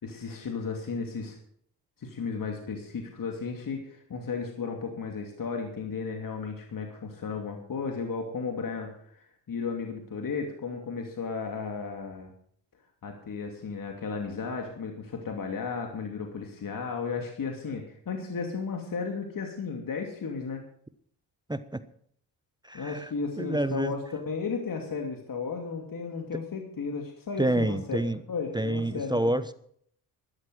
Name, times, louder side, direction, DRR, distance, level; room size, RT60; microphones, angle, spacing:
voice 1, 0.0-1.4 2.0-12.3 13.0-20.6 22.7-28.0 28.3-29.3, left 5 dB, 45° left, 3 dB, 2.8 m, -34 dB
voice 2, 21.5-21.8 22.6-23.1 23.4-24.0 27.4-28.2 28.5-29.5, right 1 dB, 10° right, 13 dB, 1.0 m, -28 dB
13.0 x 11.5 x 6.5 m, 0.64 s
supercardioid pair, 65°, 44 cm